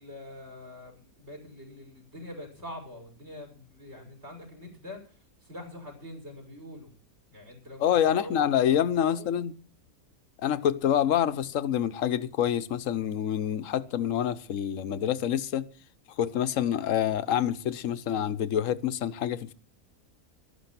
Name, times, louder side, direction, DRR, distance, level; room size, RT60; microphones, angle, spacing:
voice 1, 0.0-6.9 7.3-8.6 9.0-9.3, left 1 dB, 45° right, 6.9 m, -44 dB
voice 2, 7.8-9.5 10.4-15.6 16.2-19.5, left 10 dB, 60° left, 1.3 m, -27 dB
13.5 x 13.0 x 5.9 m
omnidirectional pair, 1.6 m